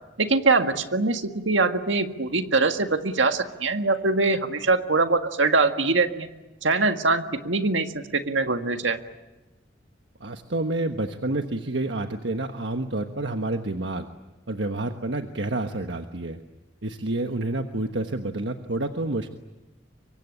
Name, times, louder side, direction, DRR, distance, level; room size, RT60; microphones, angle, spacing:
voice 1, 0.2-6.3 6.6-9.0, right 3 dB, 90° right, 7 dB, 1.8 m, -23 dB
voice 2, 10.2-14.1 14.5-16.4 16.8-19.3, right 2 dB, 70° right, 6 dB, 1.3 m, -29 dB
25.0 x 24.0 x 9.9 m, 1.1 s
head